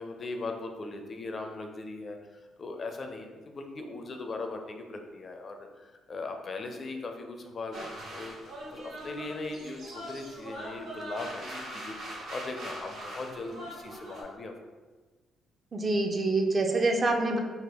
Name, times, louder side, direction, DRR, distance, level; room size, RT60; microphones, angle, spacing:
voice 1, 0.0-14.5, left 3 dB, 40° left, 4 dB, 0.4 m, -39 dB
sound 1, 7.7-14.2, right 1 dB, 70° right, 0.9 m, -42 dB
voice 2, 15.7-17.4, right 2 dB, 35° right, 3 dB, 0.4 m, -26 dB
3.4 x 2.1 x 3.5 m, 1.3 s
cardioid pair, 90°, 0 cm